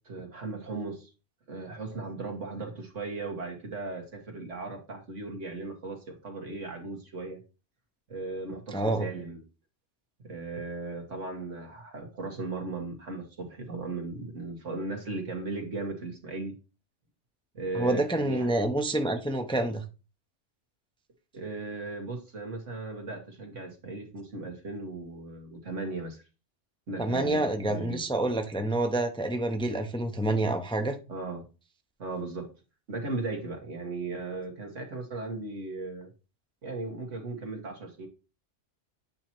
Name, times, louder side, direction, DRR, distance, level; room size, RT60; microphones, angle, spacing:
voice 1, 0.1-1.1 1.5-7.4 8.1-9.4 10.2-16.5 17.5-18.5 21.3-26.2 26.9-28.0 31.1-31.4 32.0-32.5 32.9-36.1 36.6-38.1, right 3 dB, 85° right, 2.1 m, -37 dB
voice 2, 8.7-9.1 17.7-19.8 27.0-31.0, right 1 dB, 5° left, 0.6 m, -28 dB
8.6 x 3.0 x 4.4 m
omnidirectional pair, 1.2 m